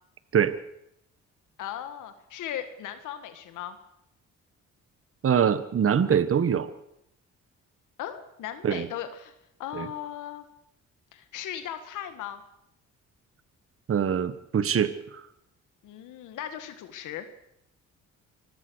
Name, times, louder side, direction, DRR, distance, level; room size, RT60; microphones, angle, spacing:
voice 1, 1.6-3.8 8.0-9.3 9.6-10.4 11.1-12.4 15.8-17.3, left 10 dB, 85° left, 9 dB, 1.8 m, -37 dB
voice 2, 5.2-6.7 8.6-8.9 9.7-9.9 13.9-15.2, right 8 dB, 45° right, 14 dB, 1.5 m, -24 dB
24.5 x 16.5 x 6.4 m, 0.79 s
cardioid pair, 90°, 30 cm